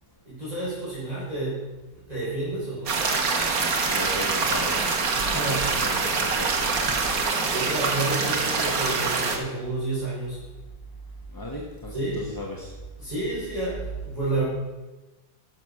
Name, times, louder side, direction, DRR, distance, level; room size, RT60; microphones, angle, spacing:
voice 1, 0.2-1.7 1.9-3.0 5.3-5.7 7.5-10.4 11.9-12.2 13.0-14.4, right 2 dB, 20° right, -10 dB, 4.0 m, -30 dB
sound 1, 2.9-9.4, right 4 dB, 55° right, 1.6 m, -25 dB
voice 2, 3.8-4.9 5.3-7.0 11.3-12.7, left 1 dB, 15° left, -2 dB, 0.9 m, -36 dB
10.5 x 6.9 x 6.2 m, 1.1 s
omnidirectional pair, 1.8 m